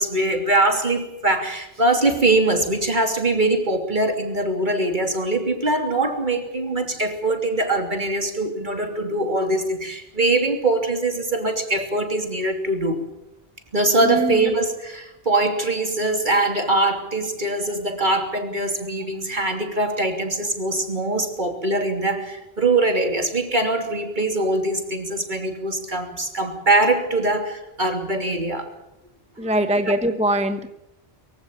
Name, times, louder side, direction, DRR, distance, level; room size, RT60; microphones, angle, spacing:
voice 1, 0.0-13.0 13.7-28.7 29.4-29.5 29.8-29.9, right 2 dB, 50° right, 5 dB, 3.2 m, -22 dB
voice 2, 14.0-14.4 29.4-30.7, right 1 dB, 5° right, 9 dB, 1.0 m, -22 dB
23.5 x 15.5 x 9.0 m, 0.87 s
omnidirectional pair, 1.0 m